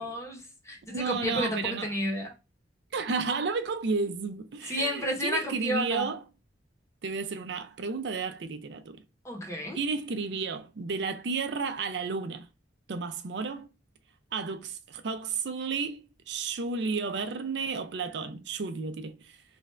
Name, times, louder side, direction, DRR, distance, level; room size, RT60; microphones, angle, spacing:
voice 1, 0.0-2.3 4.6-6.1 9.2-9.8, equal, 15° left, 1.0 m, -32 dB
voice 2, 0.9-1.9 2.9-6.2 7.0-9.0 9.7-12.5 12.9-13.7 14.3-19.3, right 4 dB, 70° right, 0.5 m, -32 dB
3.2 x 2.5 x 3.2 m
head